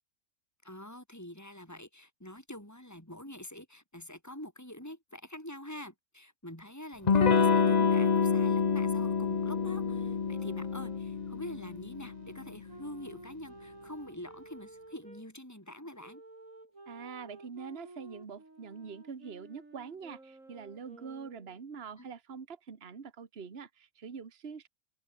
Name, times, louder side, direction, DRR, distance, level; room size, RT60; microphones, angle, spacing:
voice 1, 0.6-16.2 22.0-22.1, left 1 dB, 10° left, 7.2 m, -46 dB
Electric guitar / Strum, 7.1-12.4, left 5 dB, 35° left, 0.9 m, -27 dB
sound 1, 9.4-15.2 16.0-21.6, right 2 dB, 70° right, 5.9 m, -53 dB
voice 2, 16.9-24.7, right 6 dB, 45° right, 1.7 m, -44 dB
open air
omnidirectional pair, 1.4 m